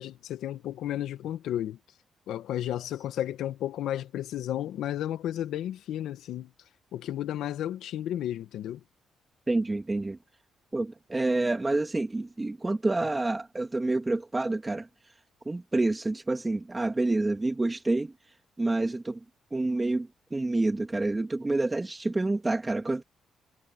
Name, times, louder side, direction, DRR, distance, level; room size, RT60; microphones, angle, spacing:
voice 1, 0.0-1.8 2.3-6.5 6.9-8.8, left 12 dB, 80° left, 1.5 m, -33 dB
voice 2, 9.5-10.2 10.7-14.9 15.5-18.1 18.6-19.2 19.5-23.0, right 2 dB, 20° right, 2.5 m, -28 dB
cardioid pair, 90°, 0 cm